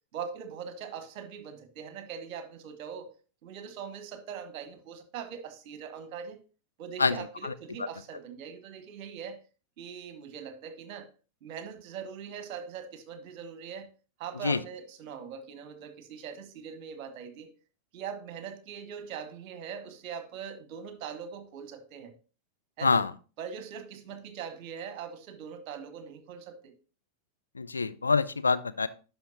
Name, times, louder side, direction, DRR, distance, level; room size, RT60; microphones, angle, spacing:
voice 1, 0.1-3.1 3.4-6.4 6.8-9.4 9.8-11.1 11.4-13.9 14.2-17.5 17.9-22.1 22.8-23.1 23.4-26.7, right 7 dB, 45° right, 1.1 m, -41 dB
voice 2, 27.6-28.9, left 4 dB, 75° left, 0.4 m, -25 dB
10.5 x 5.6 x 2.8 m
figure-of-eight pair, 90°, 0 cm